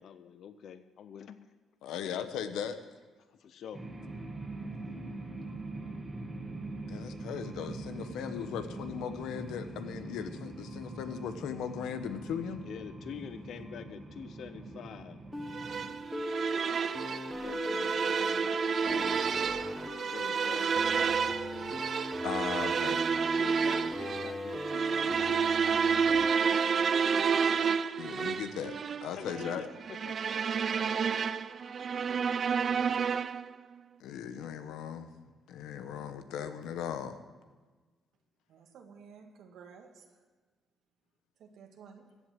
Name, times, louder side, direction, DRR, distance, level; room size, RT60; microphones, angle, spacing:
voice 1, 0.0-1.4 1.9-2.0 3.3-3.8 12.6-15.2 16.6-19.6 20.0-21.6 23.2-25.6 26.2-26.8 28.2-28.3 29.1-30.2, left 8 dB, 70° left, 12 dB, 0.6 m, -47 dB
voice 2, 1.8-2.8 6.9-12.7 18.3-18.4 22.2-23.0 28.0-28.8 29.0-29.6 34.0-35.1 35.5-37.2, left 8 dB, 90° left, 10 dB, 1.0 m, -38 dB
sound 1, 3.7-15.9, right 2 dB, 20° right, 2.0 m, -43 dB
sound 2, 15.3-27.2, equal, 10° left, 1.3 m, -39 dB
sound 3, 15.5-33.5, right 6 dB, 50° right, 0.4 m, -30 dB
voice 3, 38.5-40.2 41.4-42.1, right 6 dB, 80° right, 3 dB, 1.7 m, -53 dB
15.0 x 8.1 x 7.7 m, 1.3 s
cardioid pair, 90°, 0 cm